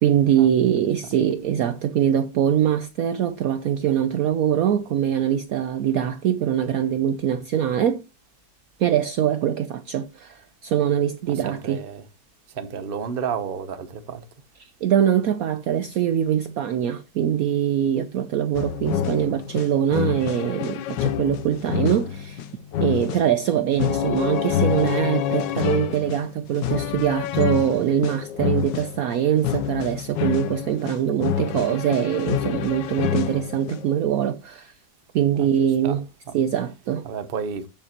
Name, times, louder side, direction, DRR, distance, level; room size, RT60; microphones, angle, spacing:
voice 1, 0.0-8.0 8.8-11.8 14.6-22.5 22.8-34.7 35.1-36.0 36.3-37.1, right 10 dB, 65° right, 0.9 m, -23 dB
voice 2, 11.3-12.0 12.5-14.2 35.3-35.5 35.8-36.0 37.0-37.7, right 6 dB, 40° right, 0.9 m, -31 dB
sound 1, 18.5-34.0, left 9 dB, 85° left, 1.4 m, -27 dB
12.5 x 6.7 x 2.9 m
omnidirectional pair, 1.9 m